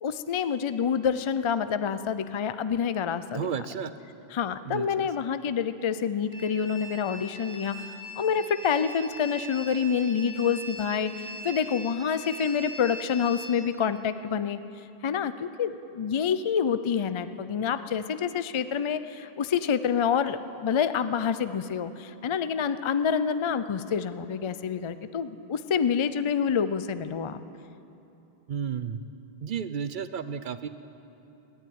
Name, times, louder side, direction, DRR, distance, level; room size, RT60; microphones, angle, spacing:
voice 1, 0.0-3.5 4.3-7.8 8.2-14.6 15.0-27.4, left 7 dB, 50° left, 12 dB, 0.3 m, -27 dB
voice 2, 3.3-3.9 4.6-5.1 28.5-29.0 29.4-30.7, right 7 dB, 55° right, 12 dB, 0.6 m, -32 dB
sound 1, 6.3-13.5, equal, 90° right, 2.2 m, -41 dB
15.0 x 10.5 x 9.2 m, 2.9 s
omnidirectional pair, 1.1 m